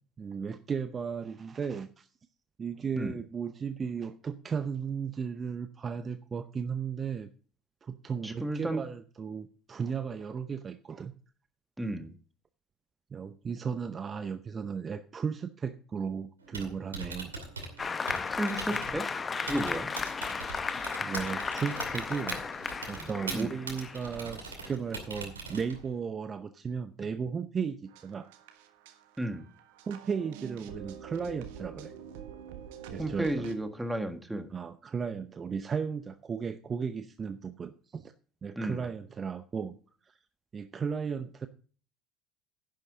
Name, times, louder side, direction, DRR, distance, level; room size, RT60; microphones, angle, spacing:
voice 1, 0.2-2.1 2.6-7.3 7.8-11.1 13.1-17.3 21.0-22.4 22.9-28.3 29.9-31.9 32.9-33.5 34.5-38.1 38.4-39.7 40.1-40.2 40.5-41.5, right 6 dB, 30° right, 11 dB, 0.7 m, -35 dB
voice 2, 8.2-8.8 11.8-12.1 18.4-19.1 19.4-19.9 23.3-23.5 29.2-29.4 33.0-34.5 38.5-38.8, right 1 dB, 5° right, 8 dB, 1.6 m, -33 dB
Typing, 16.4-26.0, right 3 dB, 85° right, 2.5 m, -42 dB
Applause, 17.8-25.0, left 5 dB, 25° left, 0.8 m, -35 dB
sound 1, 27.9-33.6, right 8 dB, 65° right, 1.4 m, -46 dB
11.0 x 10.5 x 3.7 m, 0.41 s
figure-of-eight pair, 65°, 0 cm